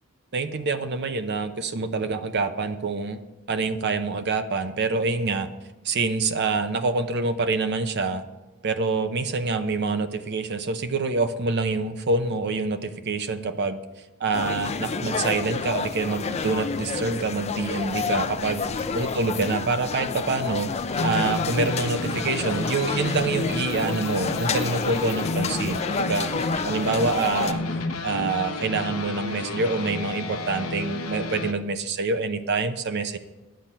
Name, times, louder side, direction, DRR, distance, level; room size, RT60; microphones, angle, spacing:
voice 1, 0.3-3.2 3.5-5.5 5.8-8.2 8.6-13.8 14.2-20.7 21.0-27.6 28.0-33.2, right 3 dB, 55° right, 10 dB, 0.7 m, -26 dB
sound 1, 14.3-27.5, left 5 dB, 30° left, 0.5 m, -29 dB
sound 2, 20.9-31.5, left 2 dB, 80° left, 0.9 m, -31 dB
10.5 x 7.5 x 5.6 m, 1.1 s
head